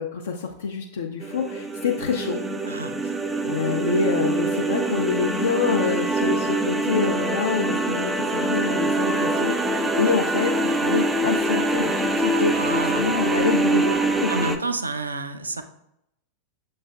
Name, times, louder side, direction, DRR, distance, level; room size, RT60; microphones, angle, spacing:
voice 1, 0.0-2.4 3.4-12.6 13.0-14.3, left 5 dB, 65° left, 2 dB, 0.4 m, -26 dB
sound 1, 1.2-14.6, right 2 dB, 10° right, 0.4 m, -24 dB
voice 2, 12.4-13.1 14.3-15.6, right 2 dB, 80° right, 8 dB, 0.4 m, -29 dB
6.6 x 3.1 x 2.3 m, 0.77 s
figure-of-eight pair, 90°, 0 cm